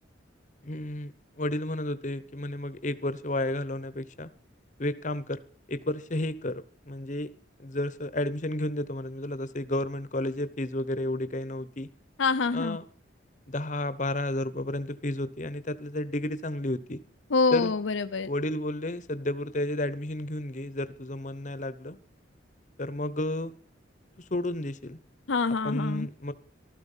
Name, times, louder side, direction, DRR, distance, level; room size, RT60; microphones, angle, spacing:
voice 1, 0.6-4.3 4.8-5.4 5.7-7.3 7.6-11.9 12.5-12.9 13.5-17.0 17.5-17.7 18.2-22.0 22.8-23.5 24.2-25.0 25.6-26.3, left 1 dB, 40° left, 15 dB, 0.9 m, -32 dB
voice 2, 12.2-12.8 17.3-18.3 25.3-26.1, left 4 dB, 80° left, 10 dB, 0.7 m, -26 dB
15.0 x 13.0 x 5.6 m, 0.42 s
head